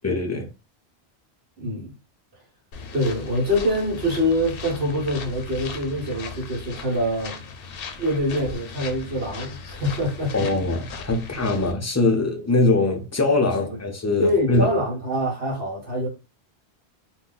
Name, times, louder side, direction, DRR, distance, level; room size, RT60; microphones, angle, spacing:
voice 1, 0.0-0.5 10.3-14.8, left 2 dB, 25° left, 0.3 m, -22 dB
voice 2, 1.6-1.9 2.9-7.4 8.0-10.5 13.6-13.8 14.2-16.1, equal, 70° right, 1.4 m, -25 dB
sound 1, 2.7-11.7, left 5 dB, 65° left, 0.7 m, -37 dB
2.7 x 2.3 x 3.7 m
omnidirectional pair, 1.1 m